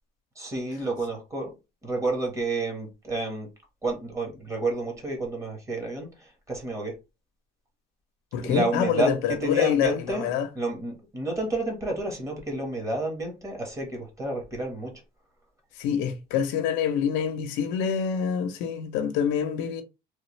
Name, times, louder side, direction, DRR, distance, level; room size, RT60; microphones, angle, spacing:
voice 1, 0.4-1.5 1.8-3.5 3.8-6.9 8.4-10.3 10.5-14.9, right 2 dB, 15° right, 1.3 m, -30 dB
voice 2, 8.3-10.5 15.8-19.8, left 8 dB, 75° left, 0.7 m, -26 dB
3.3 x 2.4 x 3.1 m
cardioid pair, 135°, 19 cm